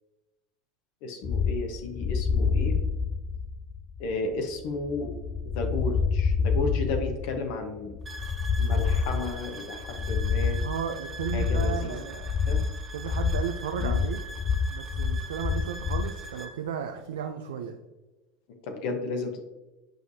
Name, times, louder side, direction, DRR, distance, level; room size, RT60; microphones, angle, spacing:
voice 1, 1.0-2.8 4.0-5.1 5.5-7.9 8.6-10.6 11.3-12.0 12.5-12.6 13.8-13.9 18.6-19.4, left 3 dB, 65° left, 4 dB, 0.9 m, -33 dB
sound 1, 1.2-16.2, left 5 dB, 35° left, 0.3 m, -28 dB
sound 2, 8.1-16.6, right 3 dB, 20° right, 0.7 m, -43 dB
voice 2, 10.6-12.4 12.9-14.2 14.7-17.8, right 8 dB, 85° right, 5 dB, 0.4 m, -34 dB
7.6 x 4.7 x 2.7 m, 1.1 s
hypercardioid pair, 95°, 0 cm